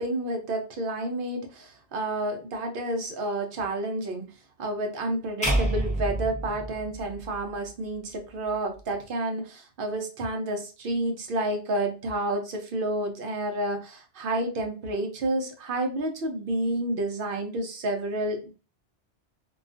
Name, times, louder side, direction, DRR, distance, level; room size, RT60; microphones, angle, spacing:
voice 1, 0.0-4.2 4.6-18.5, right 1 dB, 60° right, 4 dB, 0.6 m, -30 dB
sound 1, 5.4-7.7, right 1 dB, 5° left, 0.7 m, -28 dB
2.3 x 2.2 x 2.4 m, 0.34 s
omnidirectional pair, 1.2 m